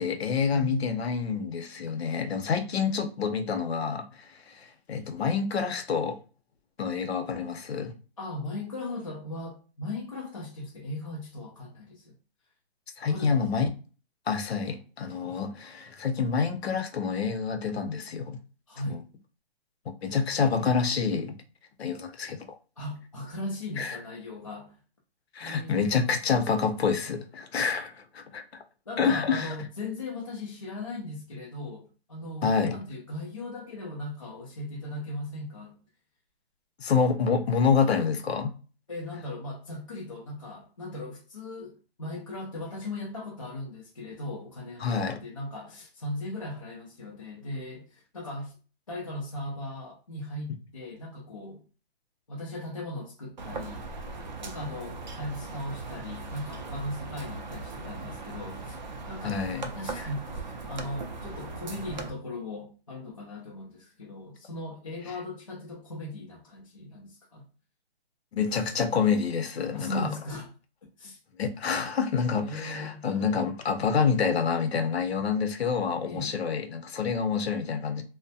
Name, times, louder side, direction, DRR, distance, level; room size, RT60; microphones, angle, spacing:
voice 1, 0.0-6.2 6.8-7.9 13.0-13.7 14.3-18.4 18.9-19.0 20.0-21.3 21.8-22.4 23.8-24.0 25.3-28.4 29.0-29.5 32.4-32.8 36.8-38.5 44.8-45.2 59.2-59.6 68.3-70.1 71.4-78.0, left 6 dB, 75° left, 0.7 m, -27 dB
voice 2, 0.5-1.0 8.2-12.1 13.1-13.4 18.7-19.1 22.8-24.8 25.4-26.1 28.9-35.8 38.9-48.5 48.9-51.6 52.3-53.9 54.4-58.8 59.1-59.4 59.8-67.5 69.7-70.5 71.0-71.2 72.4-73.0 76.0-76.4, left 1 dB, 35° left, 0.4 m, -38 dB
sound 1, 53.4-62.1, right 3 dB, 45° right, 0.4 m, -39 dB
2.3 x 2.1 x 2.6 m
hypercardioid pair, 175°, 32 cm